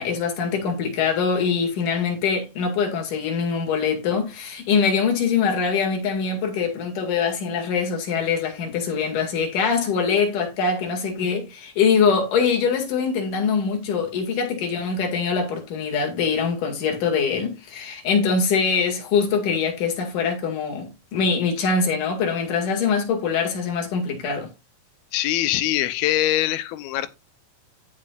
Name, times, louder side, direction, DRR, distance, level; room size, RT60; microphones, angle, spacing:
voice 1, 0.0-24.5, left 5 dB, 60° left, 3.5 m, -23 dB
voice 2, 25.1-27.1, left 14 dB, 90° left, 2.6 m, -23 dB
16.0 x 5.5 x 2.4 m
omnidirectional pair, 4.3 m